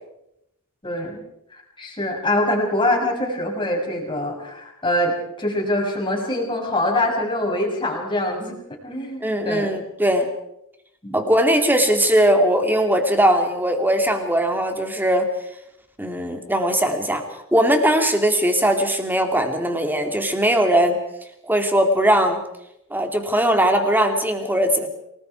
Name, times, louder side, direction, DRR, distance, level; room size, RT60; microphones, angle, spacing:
voice 1, 0.8-1.2 1.8-8.6 8.8-9.8 11.0-11.2, left 1 dB, 20° left, 0 dB, 6.2 m, -24 dB
voice 2, 9.2-10.3 11.1-15.3 16.0-17.2 17.5-21.0 21.4-22.4 22.9-24.9, right 1 dB, 10° right, 5 dB, 2.7 m, -19 dB
30.0 x 20.0 x 4.7 m, 0.80 s
head